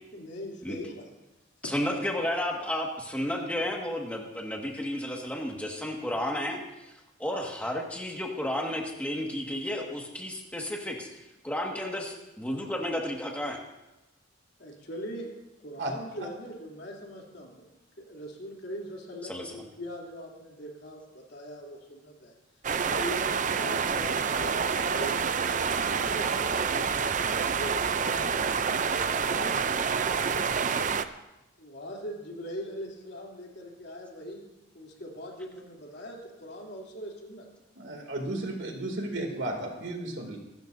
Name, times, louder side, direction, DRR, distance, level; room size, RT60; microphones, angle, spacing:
voice 1, 0.1-1.0 14.6-15.3 15.6-17.7 18.0-22.3 22.8-25.2 25.5-26.9 27.4-30.9 31.6-34.4 34.7-37.5, equal, 55° left, -2 dB, 3.1 m, -41 dB
voice 2, 1.6-6.9 7.2-11.1 11.4-13.6 19.3-19.5, left 1 dB, 5° left, 0 dB, 1.8 m, -32 dB
sound 1, 22.6-31.0, right 6 dB, 40° right, 0.5 m, -28 dB
voice 3, 37.8-40.4, right 1 dB, 65° right, 2 dB, 2.6 m, -34 dB
25.5 x 13.0 x 2.7 m, 0.97 s
head